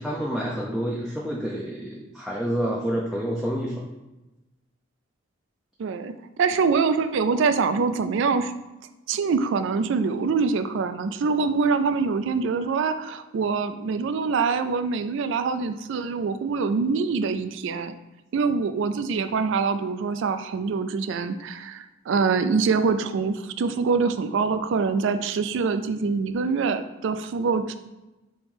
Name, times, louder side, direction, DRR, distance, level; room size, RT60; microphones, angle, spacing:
voice 1, 0.0-3.9, equal, ahead, -4 dB, 0.4 m, -28 dB
voice 2, 5.8-6.1 6.4-8.5 9.1-17.9 18.3-27.7, right 5 dB, 65° right, 10 dB, 0.3 m, -24 dB
3.5 x 3.1 x 4.7 m, 1.0 s
head